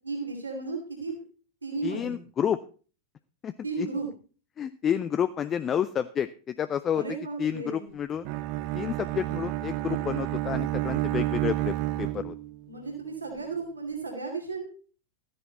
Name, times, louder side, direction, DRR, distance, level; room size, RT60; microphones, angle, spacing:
voice 1, 0.0-1.2 1.6-2.2 3.6-4.1 6.9-7.9 12.7-14.7, right 4 dB, 80° right, 1 dB, 3.2 m, -34 dB
voice 2, 1.8-2.6 3.4-3.9 4.6-7.0 7.4-8.3 8.7-12.3, left 9 dB, 25° left, 12 dB, 0.5 m, -30 dB
Bowed string instrument, 8.2-12.7, right 15 dB, 45° right, 0.7 m, -30 dB
13.5 x 9.9 x 4.1 m, 0.37 s
figure-of-eight pair, 90°, 0 cm